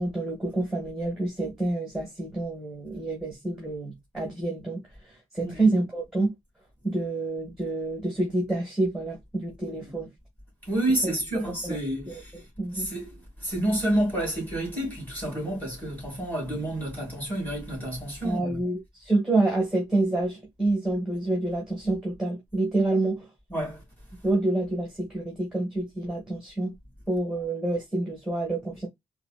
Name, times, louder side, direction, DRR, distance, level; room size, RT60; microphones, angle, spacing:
voice 1, 0.0-4.8 5.3-6.3 6.8-10.1 11.0-11.1 11.6-11.8 12.1-12.2 12.6-12.9 18.2-23.3 24.2-26.7 27.1-28.9, right 2 dB, 5° right, 1.4 m, -27 dB
voice 2, 10.7-12.4 12.7-13.1 13.4-18.6 23.5-23.8, right 1 dB, 15° left, 2.5 m, -29 dB
4.1 x 2.2 x 2.3 m
wide cardioid pair, 150°, 13 cm